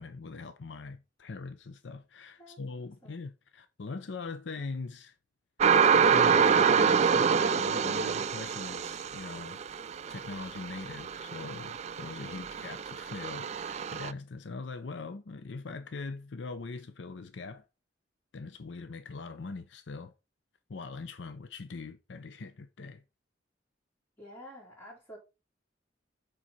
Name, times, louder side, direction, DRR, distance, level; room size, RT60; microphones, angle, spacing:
voice 1, 0.0-5.1 6.1-9.6 10.1-17.6 18.3-20.1 20.7-23.0, left 4 dB, 75° left, 0.6 m, -41 dB
sound 1, 5.6-14.1, right 6 dB, 40° right, 0.4 m, -26 dB
voice 2, 12.2-12.7 24.2-25.2, equal, 15° left, 3.9 m, -50 dB
7.4 x 4.0 x 4.1 m
head